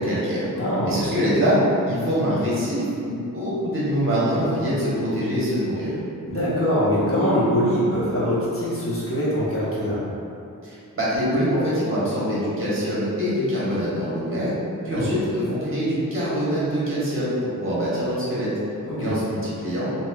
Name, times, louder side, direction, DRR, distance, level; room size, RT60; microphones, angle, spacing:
voice 1, 0.0-0.4 0.9-1.6 1.9-5.9 10.6-14.5 14.8-18.5 19.0-19.9, equal, 40° right, -9 dB, 1.1 m, -24 dB
voice 2, 0.6-1.0 6.3-10.0 14.9-15.1 18.8-19.1, equal, 40° left, -10 dB, 1.1 m, -23 dB
3.0 x 2.7 x 2.3 m, 2.6 s
wide cardioid pair, 65°, 35 cm